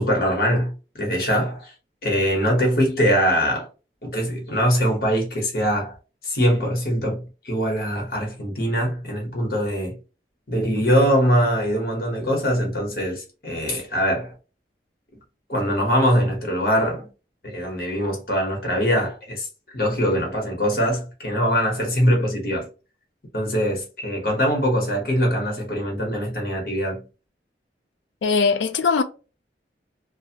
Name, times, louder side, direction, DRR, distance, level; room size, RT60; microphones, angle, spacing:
voice 1, 0.0-1.7 2.0-3.7 4.0-6.0 6.2-10.0 10.5-14.3 15.5-17.1 17.4-19.5 19.7-22.7 23.3-27.1, equal, 55° left, 1.1 m, -22 dB
voice 2, 28.2-29.0, left 4 dB, 90° left, 0.4 m, -20 dB
2.5 x 2.3 x 2.8 m
head